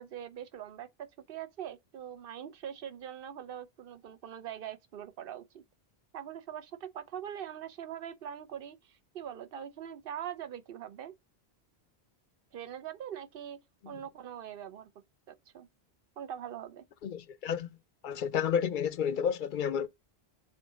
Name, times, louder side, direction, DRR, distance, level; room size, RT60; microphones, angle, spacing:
voice 1, 0.0-5.6 6.1-11.1 12.5-13.6 13.9-14.9 15.3-15.7 16.2-16.8, right 9 dB, 60° right, 0.9 m, -42 dB
voice 2, 17.0-17.7 18.0-19.9, left 8 dB, 60° left, 0.6 m, -31 dB
6.3 x 3.8 x 4.9 m
omnidirectional pair, 1.1 m